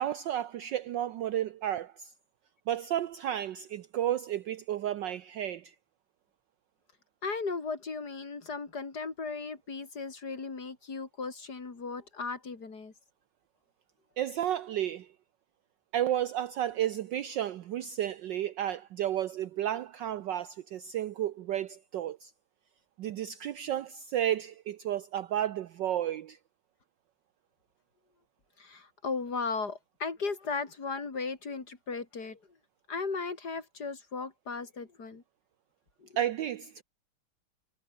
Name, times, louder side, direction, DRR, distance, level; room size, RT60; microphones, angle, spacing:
voice 1, 0.0-2.1 2.7-5.7 14.2-15.1 15.9-22.3 23.0-26.4 36.2-36.8, right 11 dB, 65° right, 1.3 m, -32 dB
voice 2, 7.2-12.9 28.6-32.4 32.9-35.2 36.0-36.1, left 4 dB, 50° left, 3.8 m, -36 dB
omnidirectional pair, 2.3 m